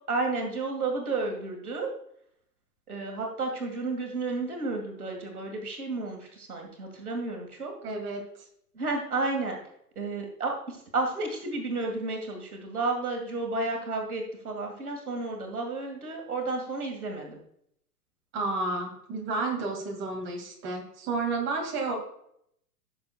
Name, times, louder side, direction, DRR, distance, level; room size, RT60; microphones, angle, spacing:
voice 1, 0.1-1.9 2.9-7.7 8.8-9.6 10.0-17.4, right 3 dB, 65° right, 2 dB, 2.1 m, -32 dB
voice 2, 7.8-8.2 18.3-21.9, right 3 dB, 25° right, 1 dB, 2.4 m, -31 dB
15.5 x 7.0 x 2.4 m, 0.71 s
figure-of-eight pair, 105°, 46 cm